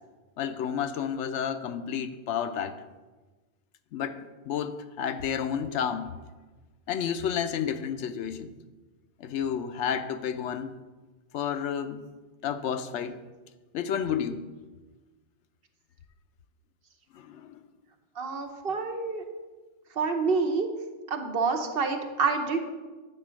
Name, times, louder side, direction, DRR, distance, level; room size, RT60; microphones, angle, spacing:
voice 1, 0.4-2.8 3.9-6.1 6.9-8.5 9.2-10.7 11.3-12.0 12.4-13.2 13.7-14.4 17.1-17.6, left 8 dB, 80° left, 10 dB, 0.9 m, -31 dB
voice 2, 18.2-19.2 20.0-20.7 21.1-22.7, right 4 dB, 55° right, 4 dB, 1.0 m, -27 dB
8.9 x 3.8 x 6.2 m, 1.3 s
omnidirectional pair, 1.2 m